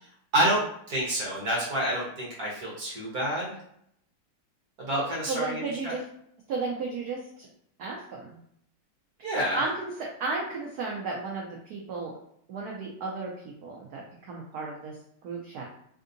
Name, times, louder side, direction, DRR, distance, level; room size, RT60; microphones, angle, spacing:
voice 1, 0.9-3.6 4.8-5.9 9.2-9.6, right 1 dB, 55° right, -5 dB, 1.3 m, -28 dB
voice 2, 5.3-6.0 6.5-7.5 7.8-8.4 9.5-12.1 12.5-13.3 13.6-14.9 15.2-15.6, right 3 dB, 80° right, -2 dB, 0.8 m, -34 dB
3.4 x 2.7 x 2.6 m, 0.70 s
omnidirectional pair, 2.3 m